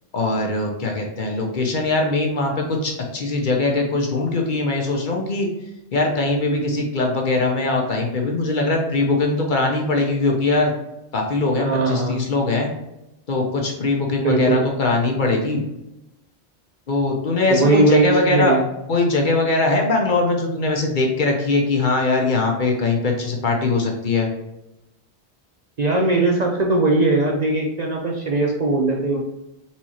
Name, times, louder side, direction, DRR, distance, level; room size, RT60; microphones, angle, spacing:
voice 1, 0.1-5.5 5.9-10.7 11.1-12.7 13.3-15.6 16.9-18.6 18.9-24.3, left 3 dB, 50° left, 1 dB, 0.8 m, -21 dB
voice 2, 11.6-12.2 14.2-14.6 17.5-18.6 25.8-29.2, right 2 dB, 45° right, -1 dB, 0.6 m, -19 dB
4.2 x 3.6 x 3.0 m, 0.91 s
omnidirectional pair, 1.2 m